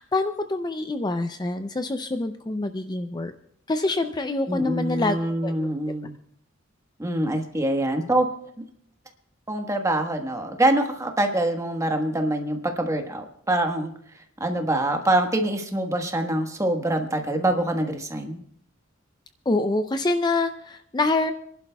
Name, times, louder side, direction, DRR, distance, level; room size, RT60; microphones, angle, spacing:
voice 1, 0.0-3.3 3.7-5.2 5.4-5.7 19.5-21.3, left 2 dB, 20° left, 8 dB, 0.5 m, -26 dB
voice 2, 4.5-6.2 7.0-8.3 9.5-13.9 14.4-18.4, right 1 dB, 15° right, 4 dB, 1.3 m, -25 dB
30.0 x 11.5 x 2.3 m, 0.67 s
head